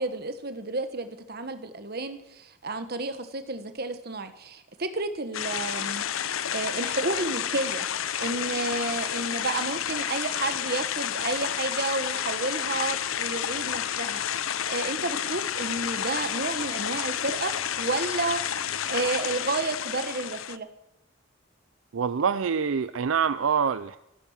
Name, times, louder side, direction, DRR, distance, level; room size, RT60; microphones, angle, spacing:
voice 1, 0.0-7.9 8.2-14.2 14.7-18.4 18.9-20.7, right 3 dB, 50° right, 9 dB, 1.4 m, -31 dB
sound 1, 5.3-20.6, left 9 dB, 85° left, 0.7 m, -30 dB
voice 2, 21.9-24.0, right 6 dB, 75° right, 13 dB, 0.5 m, -25 dB
14.5 x 12.5 x 7.4 m, 0.86 s
head